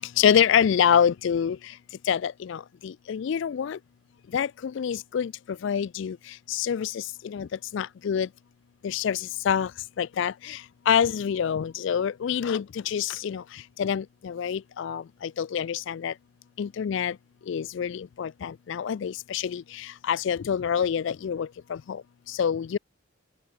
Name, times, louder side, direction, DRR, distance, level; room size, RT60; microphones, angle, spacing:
voice 1, 0.2-1.6 2.1-3.8 4.3-5.3 5.6-6.2 6.5-8.3 8.8-9.7 10.0-10.6 10.9-13.4 13.8-16.1 16.6-17.1 17.5-22.0 22.3-22.8, left 8 dB, 55° left, 0.3 m, -26 dB
open air
head